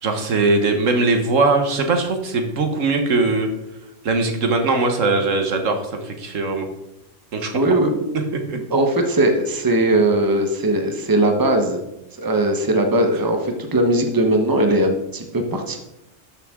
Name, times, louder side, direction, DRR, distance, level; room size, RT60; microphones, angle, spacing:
voice 1, 0.0-3.5 4.0-6.7 7.3-7.5 8.3-8.6, right 3 dB, 80° right, 5 dB, 1.6 m, -20 dB
voice 2, 7.5-8.0 8.5-11.8 12.2-15.8, right 1 dB, 20° right, 4 dB, 1.1 m, -19 dB
12.5 x 6.7 x 3.7 m, 0.88 s
omnidirectional pair, 1.3 m